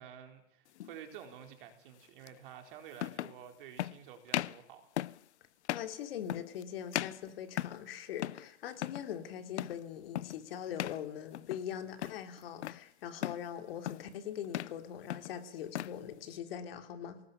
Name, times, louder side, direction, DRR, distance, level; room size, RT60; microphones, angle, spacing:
voice 1, 0.0-4.9, right 9 dB, 50° right, 6 dB, 4.4 m, -51 dB
sound 1, 0.8-1.0 2.3-2.4 3.0-3.4 3.8-4.0 4.3-4.6 5.0-5.2 5.6-5.9 6.3-6.6 6.9-7.9 8.2-8.5 8.7-9.1 9.6-9.8 10.2-10.4 10.8-11.0 11.3-11.7 12.0-12.8 13.2-13.5 13.8-14.1 14.4-14.8 15.1-16.0, left 13 dB, 80° left, 0.8 m, -38 dB
voice 2, 5.7-17.2, left 9 dB, 60° left, 8 dB, 3.3 m, -42 dB
28.5 x 19.0 x 7.2 m, 0.79 s
supercardioid pair, 170°, 34 cm